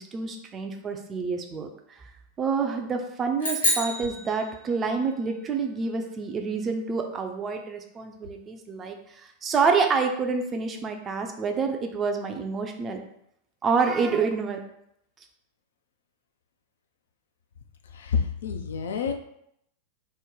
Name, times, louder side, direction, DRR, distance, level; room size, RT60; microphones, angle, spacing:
voice 1, 0.0-1.7 2.4-13.0 13.6-14.6, right 5 dB, 25° right, 4 dB, 0.4 m, -27 dB
sound 1, 3.4-5.1, left 1 dB, 85° left, 1.1 m, -28 dB
voice 2, 17.9-19.1, left 6 dB, 65° left, 6 dB, 0.3 m, -28 dB
3.1 x 2.0 x 3.7 m, 0.75 s
figure-of-eight pair, 90°, 0 cm